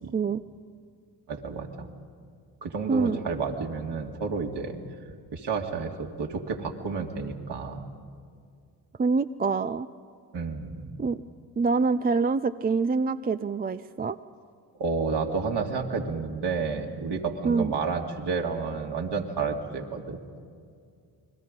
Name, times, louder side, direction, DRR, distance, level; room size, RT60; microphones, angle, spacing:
voice 1, 1.3-1.9 2.6-4.8 5.3-7.8 10.3-11.0 14.8-20.2, right 4 dB, 55° right, 1 dB, 2.7 m, -30 dB
voice 2, 2.9-3.2 9.0-9.9 11.0-11.2 11.6-14.2 17.4-17.7, right 4 dB, 20° right, 12 dB, 0.5 m, -25 dB
29.0 x 21.5 x 5.3 m, 2.2 s
hypercardioid pair, 50°, 48 cm